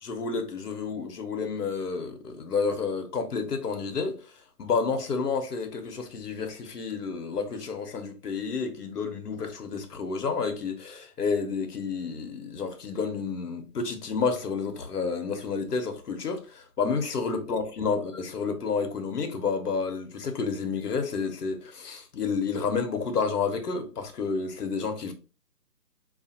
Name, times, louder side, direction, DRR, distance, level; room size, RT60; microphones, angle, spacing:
voice 1, 0.0-4.2 4.6-25.1, left 5 dB, 70° left, 1.0 m, -30 dB
4.8 x 2.5 x 2.7 m
hypercardioid pair, 165°, 48 cm